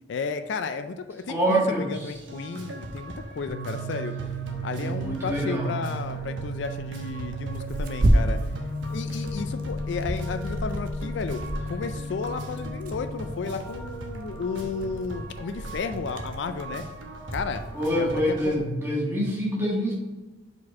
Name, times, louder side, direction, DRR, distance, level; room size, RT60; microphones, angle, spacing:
voice 1, 0.1-4.1 4.6-8.4 8.9-16.9 17.3-17.6 18.0-18.5, left 4 dB, 70° left, 9 dB, 0.4 m, -33 dB
voice 2, 1.3-2.0 4.8-5.7 17.7-19.9, equal, 15° right, -4 dB, 1.5 m, -26 dB
sound 1, 2.1-18.6, right 1 dB, 80° right, 1.0 m, -39 dB
sound 2, 3.5-17.1, right 1 dB, 15° left, 0.6 m, -37 dB
Tearing, 6.0-18.6, right 1 dB, 45° right, 0.6 m, -32 dB
5.0 x 4.2 x 4.7 m, 1.1 s
head